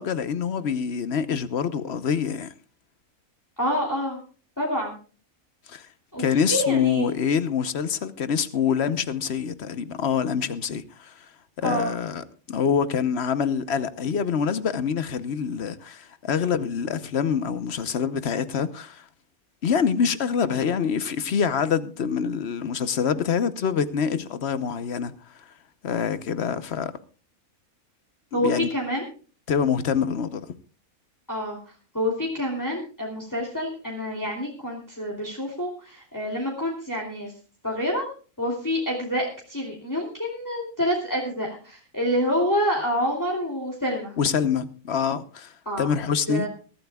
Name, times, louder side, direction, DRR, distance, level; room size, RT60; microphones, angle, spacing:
voice 1, 0.0-2.5 5.7-5.9 6.2-11.3 11.6-19.0 19.6-25.1 25.8-26.9 28.3-28.7 29.5-30.5 44.2-46.5, left 7 dB, 50° left, 1.0 m, -25 dB
voice 2, 3.6-4.2 4.6-4.9 6.1-6.2 6.5-7.1 11.6-11.9 28.3-29.0 31.3-31.6 31.9-37.3 37.6-38.1 38.4-44.1 45.7-45.9 46.3-46.5, equal, 10° left, 2.8 m, -27 dB
22.5 x 13.0 x 2.3 m
omnidirectional pair, 1.5 m